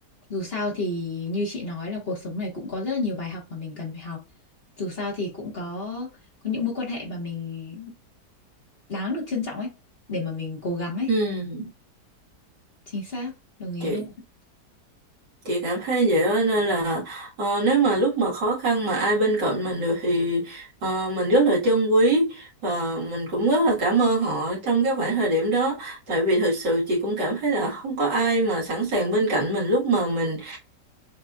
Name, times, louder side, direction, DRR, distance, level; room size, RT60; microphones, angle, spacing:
voice 1, 0.3-4.2 4.8-6.1 6.4-7.9 8.9-9.7 10.1-11.1 12.9-13.3 13.6-14.0, left 3 dB, 35° left, 1.6 m, -30 dB
voice 2, 11.1-11.7 13.8-14.1 15.4-30.6, right 2 dB, 80° right, 2.4 m, -23 dB
6.5 x 3.0 x 2.4 m
omnidirectional pair, 1.8 m